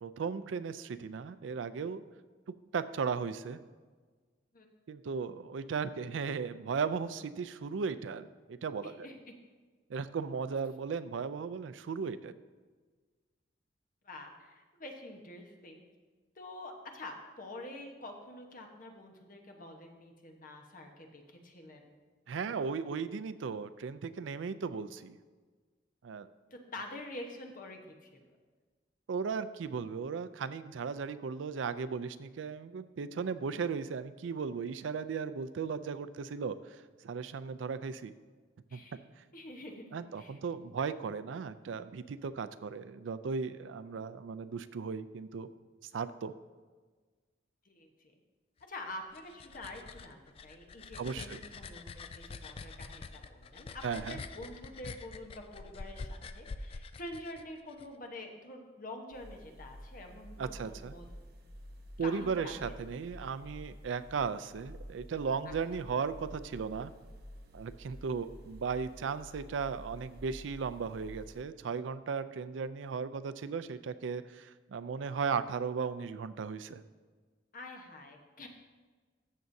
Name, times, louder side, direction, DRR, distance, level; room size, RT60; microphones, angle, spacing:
voice 1, 0.0-2.0 2.5-3.6 4.9-9.1 9.9-12.3 22.3-25.2 26.0-26.3 29.1-38.1 38.7-38.8 39.9-45.5 45.8-46.3 51.0-51.4 53.8-54.2 60.4-60.9 62.0-66.9 67.5-76.8, right 5 dB, 85° right, 14 dB, 0.4 m, -36 dB
voice 2, 8.8-9.3 14.0-15.8 16.3-22.0 26.5-28.3 38.7-39.0 39.3-40.4 47.6-48.1 48.6-61.1 62.0-62.5 63.2-63.3 65.4-65.5 77.5-78.5, left 1 dB, 45° left, 2 dB, 1.1 m, -47 dB
sound 1, 48.9-57.9, left 4 dB, 30° left, 0.3 m, -46 dB
sound 2, 59.1-71.4, equal, 55° right, 1.0 m, -50 dB
14.0 x 7.0 x 2.7 m, 1.4 s
head